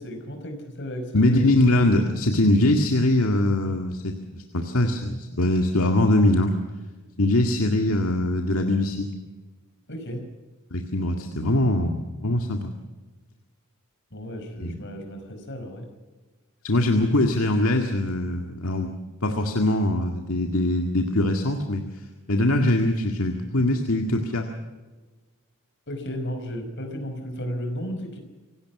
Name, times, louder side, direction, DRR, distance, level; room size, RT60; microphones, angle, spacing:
voice 1, 0.0-1.4 9.9-10.2 14.1-15.9 25.9-28.2, equal, 60° left, 5 dB, 5.2 m, -34 dB
voice 2, 1.1-6.6 7.2-9.1 10.7-12.7 14.6-14.8 16.6-18.9 19.2-21.8 22.3-24.5, left 1 dB, 75° left, 3 dB, 2.0 m, -22 dB
26.5 x 18.0 x 6.1 m, 1.3 s
head